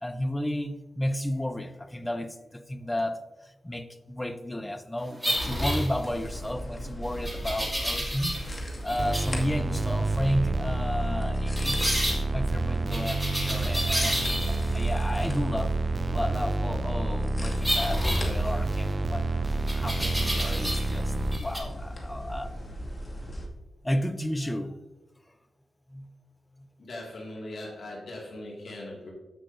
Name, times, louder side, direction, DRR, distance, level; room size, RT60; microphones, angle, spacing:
voice 1, 0.0-8.3 8.8-14.2 14.7-15.8 16.1-19.2 19.7-22.6 23.8-24.8 25.9-26.1 26.6-26.7, left 1 dB, 15° left, 10 dB, 0.7 m, -32 dB
sound 1, 5.2-6.4 7.2-8.6 8.9-9.4 11.6-12.2 12.9-14.7 17.6-18.9 19.7-21.0 21.3-21.6, equal, 5° right, 2.7 m, -30 dB
sound 2, 6.0-23.5, equal, 35° left, 2.2 m, -38 dB
sound 3, 9.0-21.4, right 2 dB, 40° right, 0.5 m, -29 dB
voice 2, 26.8-29.1, left 1 dB, 65° left, -3 dB, 2.2 m, -40 dB
14.5 x 6.2 x 2.7 m, 1.1 s
cardioid pair, 70°, 0 cm